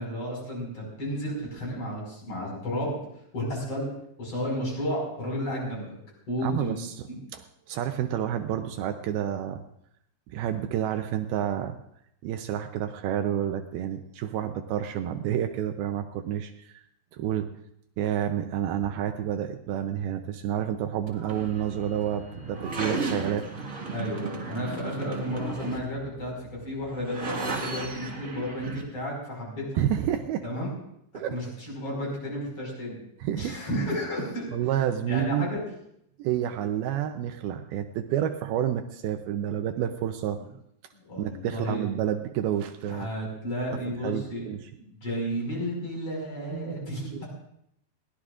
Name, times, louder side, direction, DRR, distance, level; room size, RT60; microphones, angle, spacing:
voice 1, 0.0-3.0 3.3-3.9 4.2-5.9 6.3-7.2 23.9-29.7 30.4-30.7 31.1-33.0 33.3-34.6 35.1-35.6 40.9-41.9 42.8-44.5 44.8-47.2, equal, 35° left, -2 dB, 6.3 m, -32 dB
voice 2, 6.4-7.1 7.3-9.6 10.3-11.8 12.2-16.8 17.1-17.5 18.0-23.4 29.8-30.4 31.1-31.4 33.2-34.0 34.5-35.5 36.2-40.4 41.2-43.1 44.0-44.7 46.5-47.2, right 10 dB, 80° right, 7 dB, 2.5 m, -29 dB
sound 1, 21.1-28.8, right 3 dB, 45° right, 0.9 m, -35 dB
21.5 x 17.5 x 2.5 m, 0.75 s
omnidirectional pair, 4.6 m